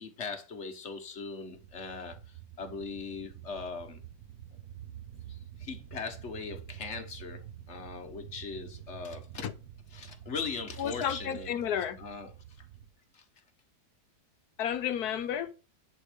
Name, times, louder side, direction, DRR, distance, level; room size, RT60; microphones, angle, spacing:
voice 1, 0.0-4.0 5.3-7.4 7.7-9.5 9.9-11.5 12.0-12.3 12.6-12.7 13.1-13.2, left 5 dB, 45° left, 1.6 m, -40 dB
sound 1, 1.5-12.9, right 11 dB, 70° right, 1.3 m, -48 dB
voice 2, 10.8-12.0 14.6-15.5, left 9 dB, 75° left, 1.3 m, -32 dB
10.0 x 4.6 x 5.2 m
omnidirectional pair, 1.7 m